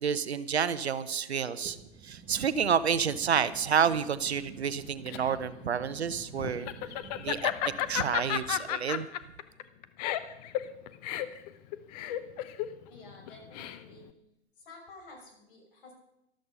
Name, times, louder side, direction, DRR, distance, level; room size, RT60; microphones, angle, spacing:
voice 1, 0.0-1.8 2.0-6.7 7.2-7.5 7.9-9.1, right 7 dB, 70° right, 15 dB, 0.9 m, -29 dB
sound 1, 1.7-8.6, right 6 dB, 30° right, 1.4 m, -50 dB
Laughter, 4.7-14.1, left 12 dB, 35° left, 0.9 m, -33 dB
voice 2, 12.9-14.1 14.6-15.9, left 2 dB, 55° left, 1 dB, 6.0 m, -51 dB
13.5 x 13.0 x 5.5 m, 0.86 s
figure-of-eight pair, 105°, 33 cm